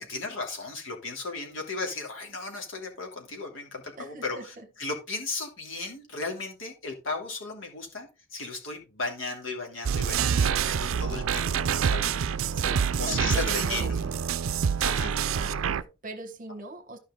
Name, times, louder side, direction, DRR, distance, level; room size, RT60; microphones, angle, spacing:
voice 1, 0.0-12.1 13.0-14.1 14.8-15.1, left 3 dB, 70° left, 2.9 m, -35 dB
voice 2, 4.0-4.6 10.2-10.8 12.5-13.9 15.0-17.0, right 2 dB, 40° right, 1.4 m, -41 dB
sound 1, 9.9-15.8, right 7 dB, 80° right, 0.5 m, -26 dB
12.5 x 5.4 x 3.8 m
head